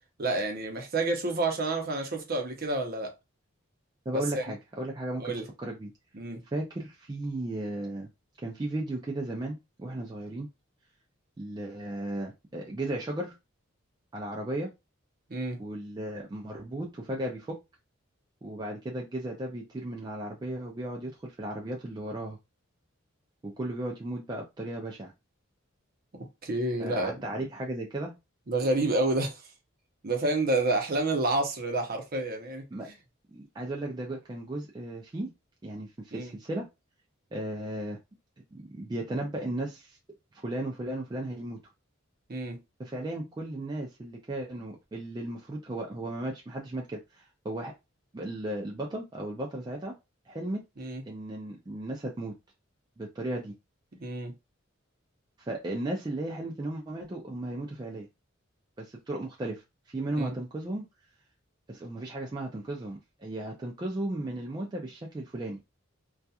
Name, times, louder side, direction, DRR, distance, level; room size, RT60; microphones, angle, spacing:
voice 1, 0.2-3.1 4.1-4.4 5.2-5.5 6.1-6.4 15.3-15.6 26.1-27.1 28.5-29.4 30.0-32.6 36.1-36.3 42.3-42.6 50.8-51.0 54.0-54.3 60.2-60.3, right 2 dB, 45° right, 0.7 m, -29 dB
voice 2, 4.1-5.3 5.6-5.9 6.5-8.1 8.4-10.5 11.4-13.4 14.1-14.7 15.6-17.6 18.4-22.4 23.4-25.1 26.8-28.2 32.7-32.9 33.3-35.3 35.6-36.7 37.3-38.0 38.5-40.0 40.3-41.6 42.8-47.7 48.1-49.9 50.3-50.6 51.1-52.4 53.0-53.6 55.4-58.1 58.8-60.9 61.7-65.6, right 1 dB, 20° right, 0.3 m, -35 dB
2.7 x 2.3 x 2.3 m
head